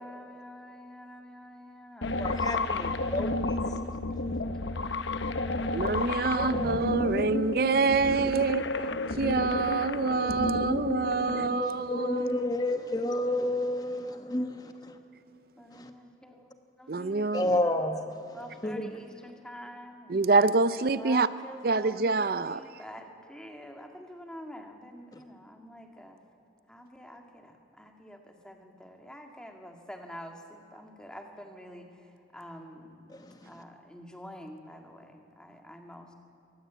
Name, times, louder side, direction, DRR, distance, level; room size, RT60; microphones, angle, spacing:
voice 1, 0.0-2.9 3.6-5.8 13.8-14.8 15.6-16.5 16.8-17.8 18.3-20.3 21.0-26.2 26.7-33.2 33.5-36.2, equal, 5° left, 2.1 m, -47 dB
sound 1, 2.0-11.5, left 2 dB, 80° left, 0.9 m, -31 dB
voice 2, 2.1-3.6 6.4-6.9 11.4-15.0 15.7-15.9 17.3-18.0 18.6-18.9 33.1-33.3, left 1 dB, 20° left, 1.1 m, -31 dB
voice 3, 5.7-8.6 9.1-12.3 16.9-17.6 20.1-21.3 21.6-22.6, right 4 dB, 55° right, 0.5 m, -26 dB
23.5 x 19.0 x 8.2 m
head